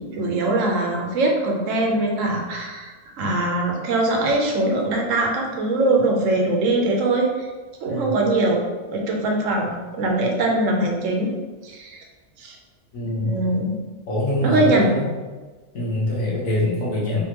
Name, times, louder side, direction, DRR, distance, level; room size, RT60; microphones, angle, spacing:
voice 1, 0.0-7.5 7.8-8.6 8.9-11.3 11.6-12.0 12.4-12.6 13.2-13.7 14.4-14.9, right 2 dB, 75° right, 0 dB, 1.1 m, -22 dB
voice 2, 12.9-13.4 14.1-15.1 15.7-17.2, left 1 dB, 85° left, -6 dB, 1.7 m, -24 dB
4.1 x 3.6 x 2.9 m, 1.3 s
omnidirectional pair, 1.4 m